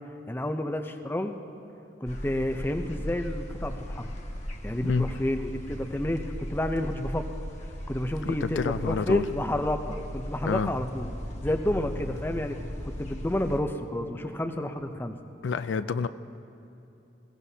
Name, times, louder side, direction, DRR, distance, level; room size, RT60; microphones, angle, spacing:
voice 1, 0.3-1.4 2.0-4.1 4.6-7.3 7.9-11.1 11.4-12.6 12.8-15.2, left 1 dB, 10° left, 6 dB, 0.6 m, -30 dB
sound 1, 2.1-13.6, equal, 40° left, 1.2 m, -37 dB
voice 2, 8.2-9.3 10.4-10.7 15.4-16.1, left 5 dB, 80° left, 12 dB, 0.4 m, -28 dB
21.5 x 17.0 x 2.8 m, 2.8 s
head